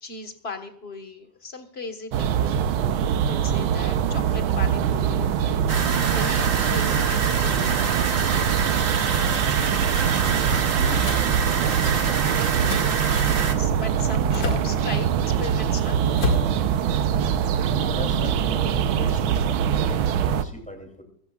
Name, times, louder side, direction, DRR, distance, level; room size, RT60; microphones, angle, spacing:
voice 1, 0.0-2.6 3.3-5.3 6.1-8.0 13.2-16.0, left 3 dB, 35° left, 6 dB, 1.4 m, -37 dB
sound 1, 2.1-20.5, right 8 dB, 85° right, 1.6 m, -23 dB
sound 2, 5.7-13.5, right 5 dB, 45° right, 1.6 m, -27 dB
voice 2, 9.9-11.1 11.5-12.4 17.6-21.0, left 1 dB, 5° left, 3 dB, 2.7 m, -38 dB
sound 3, 11.0-11.3 12.7-12.9 14.3-14.7 16.1-16.5, left 2 dB, 65° left, 2.8 m, -26 dB
24.0 x 14.0 x 2.4 m, 0.71 s
omnidirectional pair, 2.2 m